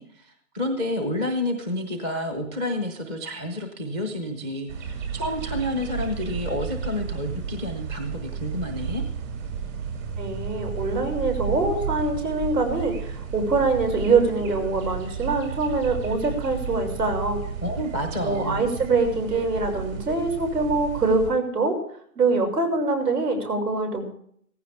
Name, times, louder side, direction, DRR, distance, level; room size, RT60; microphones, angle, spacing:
voice 1, 0.0-9.0 17.6-18.6, left 1 dB, 10° right, 5 dB, 0.6 m, -29 dB
sound 1, 4.7-21.3, right 6 dB, 55° right, 5.8 m, -33 dB
voice 2, 10.2-17.5 18.2-21.8 22.2-24.2, right 3 dB, 85° right, 4 dB, 6.2 m, -24 dB
17.0 x 15.0 x 3.4 m, 0.63 s
hypercardioid pair, 155°, 47 cm